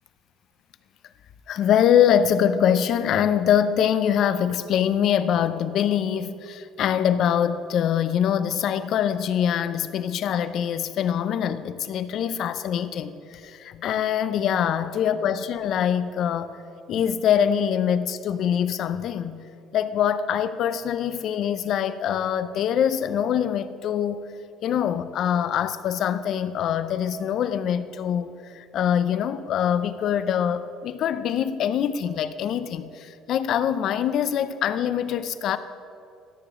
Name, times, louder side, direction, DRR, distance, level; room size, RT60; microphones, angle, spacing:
voice 1, 1.5-16.5 16.9-19.4 19.7-24.3 24.6-35.6, left 9 dB, 55° left, 13 dB, 0.4 m, -24 dB
13.5 x 6.8 x 3.6 m, 2.5 s
cardioid pair, 135°, 0 cm